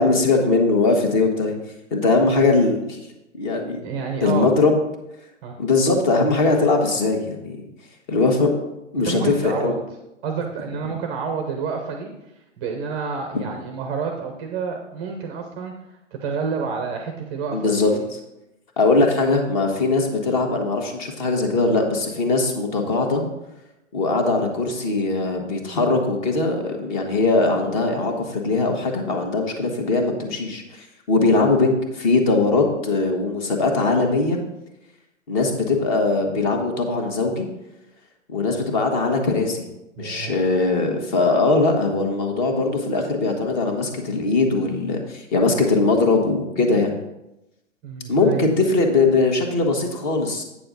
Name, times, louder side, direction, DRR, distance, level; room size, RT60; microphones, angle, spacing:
voice 1, 0.0-1.6 1.9-3.0 3.3-3.8 4.2-4.7 5.6-7.6 8.1-8.5 8.9-9.7 17.5-18.2 18.8-23.2 23.9-34.4 35.3-37.4 38.3-39.7 40.0-46.9 48.1-50.4, left 3 dB, 35° left, 3 dB, 1.5 m, -20 dB
voice 2, 3.8-4.5 5.4-5.6 9.0-9.7 10.2-12.1 12.6-18.1 18.9-19.1 40.0-40.3 47.8-48.7, right 5 dB, 15° right, 4 dB, 0.5 m, -29 dB
8.5 x 6.8 x 3.9 m, 0.93 s
hypercardioid pair, 145°, 38 cm